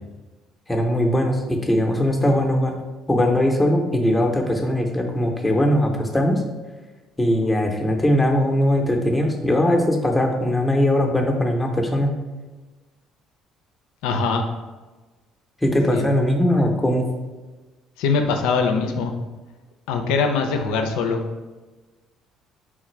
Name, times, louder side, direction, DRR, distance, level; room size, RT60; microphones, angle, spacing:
voice 1, 0.7-2.8 3.1-6.4 7.2-12.1 15.6-17.0, left 1 dB, 10° left, 2 dB, 0.6 m, -20 dB
voice 2, 14.0-14.4 15.9-16.0 18.0-19.1 19.9-21.2, left 4 dB, 75° left, 5 dB, 0.3 m, -22 dB
3.2 x 2.4 x 3.1 m, 1.2 s
hypercardioid pair, 60°, 0 cm